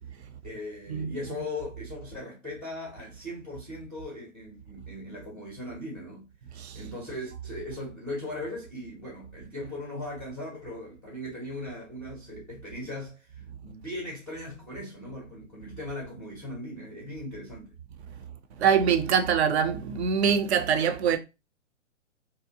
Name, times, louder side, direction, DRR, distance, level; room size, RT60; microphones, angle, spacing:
voice 1, 0.4-6.3 6.7-17.7, left 1 dB, 5° left, 0.4 m, -39 dB
voice 2, 18.6-21.2, right 7 dB, 60° right, 0.5 m, -24 dB
2.7 x 2.0 x 2.6 m
hypercardioid pair, 125°, 38 cm